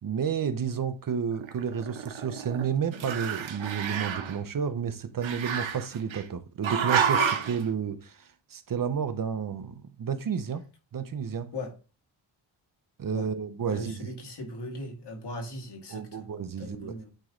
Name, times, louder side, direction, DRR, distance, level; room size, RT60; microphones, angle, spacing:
voice 1, 0.0-10.6 10.9-11.5 13.0-14.1 15.9-17.0, right 7 dB, 45° right, 0.7 m, -31 dB
Growling, 1.4-2.6 2.9-4.4 5.2-6.2 6.6-7.6, right 7 dB, 75° right, 1.1 m, -29 dB
voice 2, 13.6-17.1, left 1 dB, 60° left, 2.0 m, -39 dB
9.1 x 3.1 x 3.7 m
wide cardioid pair, 140°, 47 cm